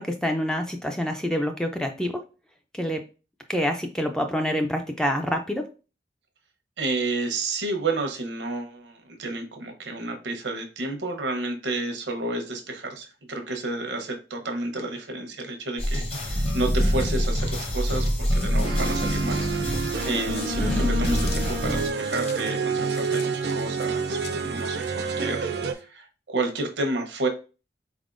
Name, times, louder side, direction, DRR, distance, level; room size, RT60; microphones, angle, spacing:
voice 1, 0.0-2.1 2.7-3.0 3.5-5.6 20.6-20.9, equal, 5° left, 4 dB, 0.3 m, -27 dB
voice 2, 6.8-27.3, right 2 dB, 90° right, 4 dB, 0.9 m, -31 dB
sound 1, 15.8-21.9, equal, 30° left, 0.9 m, -25 dB
sound 2, 18.6-25.7, right 4 dB, 65° right, 0.4 m, -28 dB
sound 3, 20.3-25.8, left 7 dB, 65° left, 0.5 m, -45 dB
4.2 x 3.5 x 2.5 m, 0.33 s
head